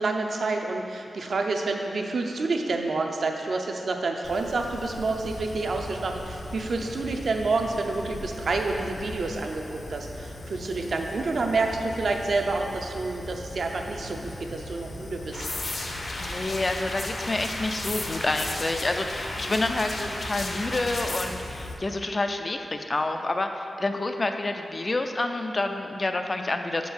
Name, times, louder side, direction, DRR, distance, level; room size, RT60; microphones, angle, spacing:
voice 1, 0.0-15.5 19.4-19.6, right 3 dB, 60° right, 3 dB, 0.5 m, -28 dB
Fire, 4.2-21.7, left 1 dB, 85° left, 0.9 m, -40 dB
sound 1, 15.3-21.3, left 2 dB, 50° left, 0.7 m, -34 dB
voice 2, 16.2-26.9, left 2 dB, 30° left, 5 dB, 0.3 m, -28 dB
5.2 x 4.7 x 6.3 m, 2.7 s
wide cardioid pair, 140°, 0 cm